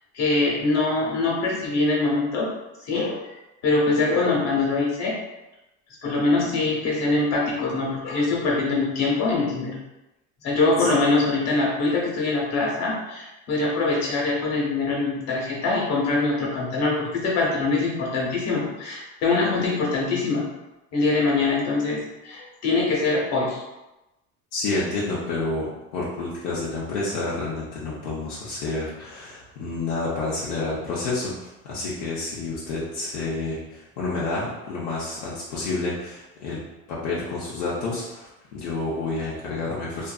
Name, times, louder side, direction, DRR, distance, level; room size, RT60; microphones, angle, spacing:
voice 1, 0.1-2.5 2.9-3.2 3.6-5.1 6.0-9.7 10.4-20.4 20.9-22.0 22.2-23.6, left 3 dB, 55° left, -3 dB, 1.0 m, -23 dB
voice 2, 24.5-36.6 36.9-40.1, left 3 dB, 75° left, -7 dB, 0.7 m, -29 dB
2.6 x 2.5 x 2.3 m, 0.99 s
cardioid pair, 125°, 32 cm